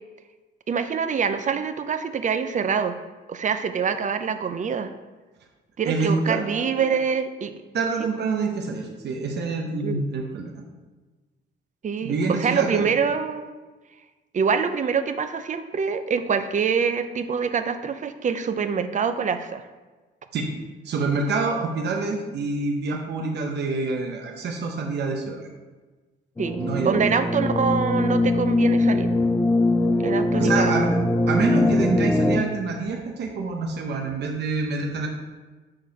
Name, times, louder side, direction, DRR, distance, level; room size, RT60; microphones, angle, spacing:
voice 1, 0.7-2.9 3.3-4.9 5.8-7.6 9.8-10.0 11.8-13.5 14.3-19.6 26.4-29.1 30.0-30.8, right 6 dB, 40° right, 10 dB, 0.5 m, -25 dB
voice 2, 5.8-7.0 7.7-10.5 12.0-12.9 20.3-20.5 20.8-25.5 26.6-27.1 30.4-30.9 31.3-35.1, right 4 dB, 60° right, 1 dB, 0.9 m, -27 dB
sound 1, 26.4-32.4, left 2 dB, 10° left, 0.4 m, -21 dB
6.5 x 3.9 x 5.2 m, 1.3 s
cardioid pair, 90°, 20 cm